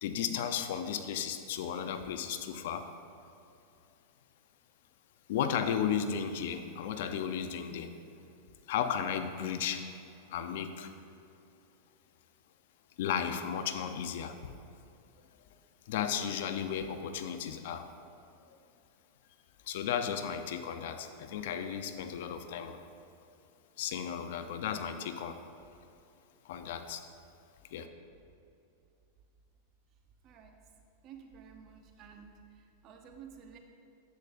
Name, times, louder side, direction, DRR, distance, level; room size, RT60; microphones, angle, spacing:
voice 1, 0.0-2.9 5.3-8.0 8.7-9.8 10.3-10.9 13.0-14.4 15.9-17.9 19.7-22.8 23.8-25.4 26.4-27.0 27.7-27.9, left 8 dB, 70° left, 8 dB, 0.6 m, -34 dB
voice 2, 30.2-30.6 31.0-33.6, right 7 dB, 40° right, 4 dB, 0.8 m, -52 dB
10.5 x 8.1 x 2.5 m, 2.7 s
hypercardioid pair, 120°, 0 cm